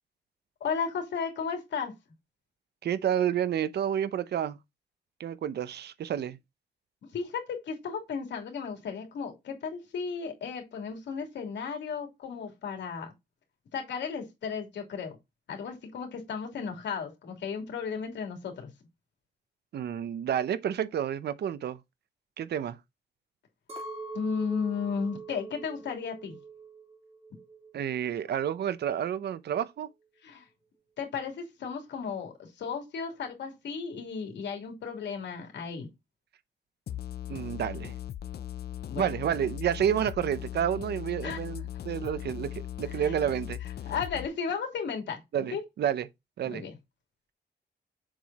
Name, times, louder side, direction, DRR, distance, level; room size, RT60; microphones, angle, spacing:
voice 1, 0.6-1.9 7.1-13.1 13.7-15.1 15.5-18.7 24.1-26.4 30.2-30.4 31.0-35.9 38.9-39.0 41.2-41.4 43.0-43.1 43.8-45.2 45.5-45.6 46.4-46.7, left 6 dB, 85° left, 3.0 m, -34 dB
voice 2, 2.8-4.6 5.2-6.4 19.7-21.8 22.4-22.8 27.7-29.9 37.3-37.9 39.0-43.6 45.3-46.1 46.4-46.6, right 9 dB, 70° right, 0.7 m, -30 dB
Chink clink, 23.7-28.1 28.3-29.1, right 3 dB, 35° right, 3.5 m, -44 dB
sound 1, 36.9-44.3, left 11 dB, 65° left, 0.6 m, -39 dB
7.6 x 4.8 x 4.1 m
cardioid pair, 110°, 18 cm